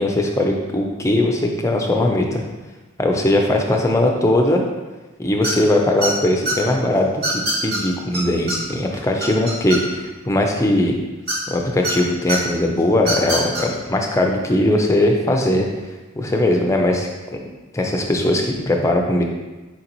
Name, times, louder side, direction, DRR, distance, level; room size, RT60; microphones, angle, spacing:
voice 1, 0.0-2.4 3.0-4.6 5.2-10.9 11.5-15.7 16.1-17.1 17.7-19.2, left 1 dB, 15° left, 1 dB, 0.4 m, -19 dB
sound 1, 5.4-5.7 6.0-6.5 7.2-7.8 8.1-8.2 8.5-8.6 8.9-10.1 11.3-11.9 12.3-12.4 13.0-13.6, right 2 dB, 50° right, 1.1 m, -23 dB
4.6 x 3.9 x 2.9 m, 1.2 s
head